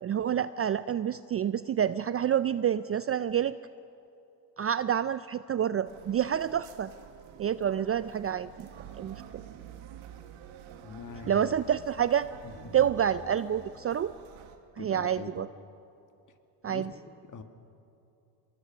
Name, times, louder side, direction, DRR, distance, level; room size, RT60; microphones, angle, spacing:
voice 1, 0.0-3.6 4.6-6.9 7.4-8.7 9.0-9.4 11.3-12.3 12.7-14.1 14.8-15.5 16.6-16.9, right 9 dB, 30° right, 14 dB, 0.4 m, -28 dB
sound 1, 5.9-14.6, right 9 dB, 70° right, 2.0 m, -48 dB
voice 2, 10.8-11.5 12.4-12.9 14.8-15.5 16.7-17.4, left 5 dB, 40° left, 7 dB, 1.9 m, -43 dB
25.0 x 21.0 x 6.0 m, 2.8 s
supercardioid pair, 80°, 49 cm